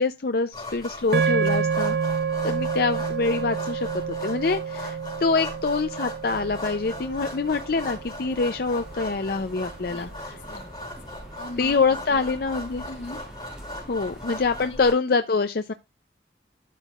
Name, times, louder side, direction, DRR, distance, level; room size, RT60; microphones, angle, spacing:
voice 1, 0.0-2.0 2.4-10.3 11.6-12.8 13.9-15.7, left 4 dB, 55° left, 0.5 m, -25 dB
sound 1, 0.5-14.9, left 1 dB, 25° left, 5.0 m, -39 dB
sound 2, 1.1-9.5, right 6 dB, 60° right, 0.5 m, -29 dB
sound 3, 6.2-14.7, equal, 5° right, 3.0 m, -46 dB
voice 2, 9.9-11.0 11.3-12.2 12.8-13.2 14.6-14.8, left 2 dB, 90° left, 2.0 m, -40 dB
12.5 x 7.1 x 2.4 m
head